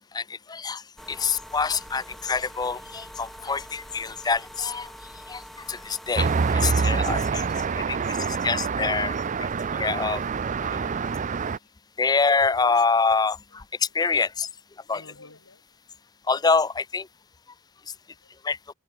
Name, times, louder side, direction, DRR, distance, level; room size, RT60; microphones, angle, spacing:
voice 1, 0.5-0.8 1.1-4.9 5.3-5.4 5.7-7.4 8.2-9.1 9.7-10.2 12.0-13.6 13.9-14.5 14.9-15.0 16.3-17.1 18.4-18.6, left 4 dB, 20° left, 0.5 m, -25 dB
sound 1, 1.0-6.6, equal, ahead, 5.8 m, -44 dB
voice 2, 1.1-1.6 14.9-15.6 18.2-18.3, left 2 dB, 75° left, 4.1 m, -57 dB
Traffic noise roadway noise, 6.2-11.6, right 5 dB, 35° right, 0.4 m, -26 dB
head